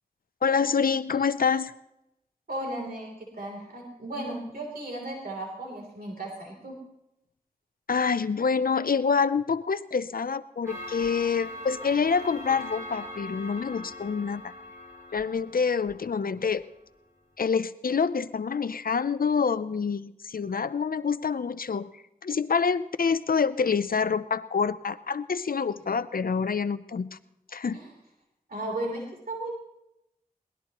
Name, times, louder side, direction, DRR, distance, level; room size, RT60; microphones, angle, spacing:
voice 1, 0.4-1.7 7.9-14.5 15.1-16.6 17.4-21.9 22.2-27.2 27.5-27.8, left 5 dB, 75° left, 14 dB, 0.6 m, -26 dB
voice 2, 2.5-6.8 27.7-27.9 28.5-29.5, right 1 dB, 85° right, 0 dB, 3.2 m, -35 dB
Clock, 10.7-16.6, left 1 dB, 20° right, 7.7 m, -41 dB
22.5 x 18.5 x 3.0 m, 0.87 s
wide cardioid pair, 50°, 15 cm